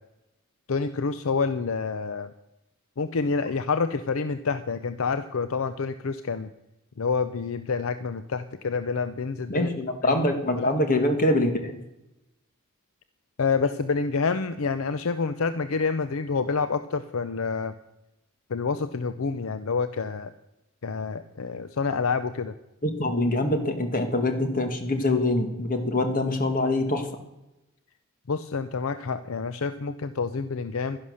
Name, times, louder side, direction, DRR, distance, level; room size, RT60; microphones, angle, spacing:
voice 1, 0.7-2.3 3.0-6.5 7.0-9.7 10.0-10.2 10.5-10.7 13.4-17.7 18.5-20.3 20.8-22.5 28.3-31.0, left 4 dB, 65° left, 12 dB, 0.6 m, -28 dB
voice 2, 9.5-11.8 22.8-27.1, left 1 dB, 40° left, 6 dB, 1.8 m, -24 dB
11.5 x 11.0 x 6.4 m, 0.93 s
head